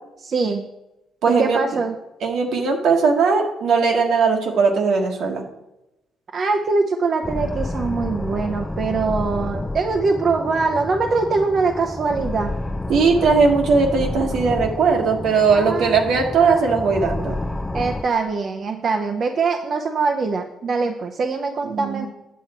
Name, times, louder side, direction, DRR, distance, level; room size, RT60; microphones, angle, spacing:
voice 1, 0.2-0.6 1.3-1.9 6.3-12.5 15.5-16.0 17.7-22.1, right 4 dB, 50° right, 3 dB, 0.7 m, -23 dB
voice 2, 1.2-1.6 2.2-5.5 12.9-17.4 21.6-22.1, right 5 dB, 75° right, 2 dB, 1.5 m, -19 dB
sound 1, 7.2-18.0, left 2 dB, 10° left, 0.5 m, -29 dB
8.4 x 7.3 x 4.4 m, 0.92 s
cardioid pair, 90°, 0 cm